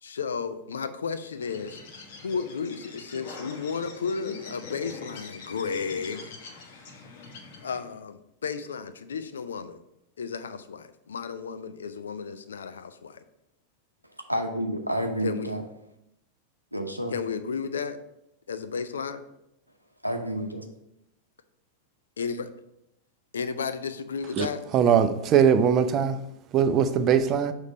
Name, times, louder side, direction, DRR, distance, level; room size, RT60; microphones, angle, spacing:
voice 1, 0.0-1.8 2.2-6.3 7.6-9.8 10.2-13.2 15.2-15.5 17.1-18.0 18.5-19.2 22.2-22.5 23.3-24.7, left 5 dB, 70° left, 0.4 m, -33 dB
Bird, 1.3-8.0, left 4 dB, 50° left, 1.0 m, -44 dB
voice 2, 14.3-15.6 16.7-17.1 20.0-20.6, equal, 90° right, 0.7 m, -29 dB
voice 3, 24.7-26.2 26.5-27.5, right 8 dB, 35° right, 0.5 m, -21 dB
6.4 x 3.3 x 5.2 m
figure-of-eight pair, 90°, 0 cm